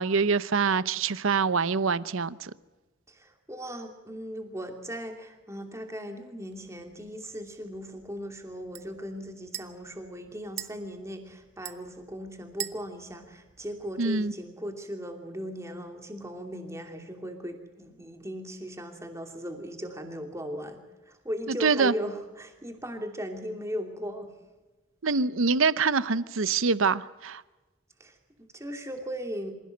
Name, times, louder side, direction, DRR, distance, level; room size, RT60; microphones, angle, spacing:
voice 1, 0.0-2.5 14.0-14.3 21.5-21.9 25.0-27.4, right 5 dB, 75° right, 16 dB, 0.8 m, -25 dB
voice 2, 3.1-20.8 21.1-24.3 28.0-29.5, equal, 15° right, 4 dB, 2.7 m, -38 dB
sound 1, 6.5-14.3, right 12 dB, 55° right, 1.0 m, -45 dB
26.5 x 16.5 x 7.9 m, 1.2 s
head